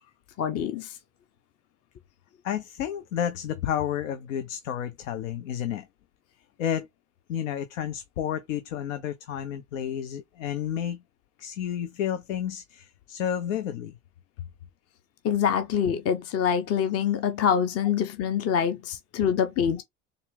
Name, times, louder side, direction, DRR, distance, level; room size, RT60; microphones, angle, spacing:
voice 1, 0.4-1.0 15.2-19.8, left 8 dB, 40° left, 0.7 m, -25 dB
voice 2, 2.4-5.9 6.6-6.9 7.3-11.0 11.4-13.9, left 9 dB, 85° left, 0.6 m, -31 dB
4.1 x 2.5 x 3.4 m
hypercardioid pair, 80°, 38 cm